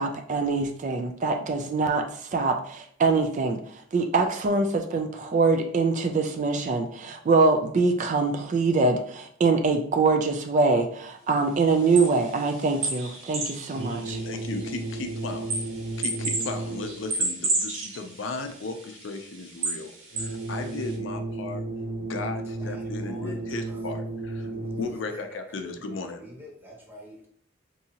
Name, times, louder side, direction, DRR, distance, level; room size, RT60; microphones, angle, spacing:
voice 1, 0.0-2.1 2.3-3.6 3.9-14.2, right 3 dB, 40° right, 5 dB, 0.3 m, -24 dB
sound 1, 11.8-20.9, right 2 dB, 85° right, 1.4 m, -33 dB
sound 2, 13.7-17.2 20.1-25.2, right 2 dB, 60° right, 1.3 m, -34 dB
voice 2, 14.1-15.6 16.0-21.7 22.0-24.5 24.8-26.2, left 3 dB, 70° left, 6 dB, 0.5 m, -36 dB
voice 3, 22.6-23.8 24.4-25.2 25.8-27.3, equal, 10° right, -2 dB, 0.9 m, -46 dB
4.7 x 2.7 x 2.8 m, 0.62 s
head